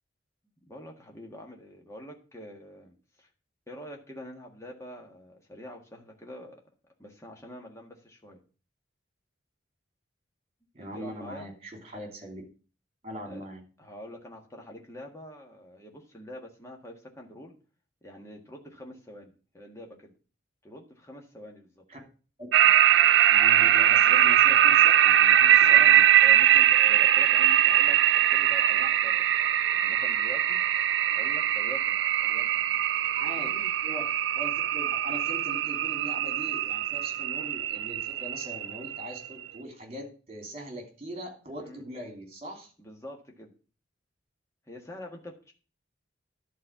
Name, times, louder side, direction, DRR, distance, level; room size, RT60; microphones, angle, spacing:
voice 1, 0.7-3.3 3.7-8.4 10.8-11.5 13.2-13.4 13.8-17.6 18.0-20.1 20.6-21.8 26.2-28.0 28.3-29.3 29.7-30.6 31.1-32.0 32.2-32.5 33.4-33.7 41.6-41.8 42.8-43.5 44.7-45.5, left 1 dB, 15° left, 1 dB, 1.6 m, -45 dB
voice 2, 10.7-12.4 13.0-13.6 21.9-22.0 23.3-26.1 33.2-33.5 33.8-34.0 34.3-42.7, equal, 30° right, 2 dB, 2.9 m, -41 dB
sound 1, 22.5-39.3, right 10 dB, 60° right, 0.4 m, -22 dB
11.0 x 4.3 x 7.3 m, 0.37 s
head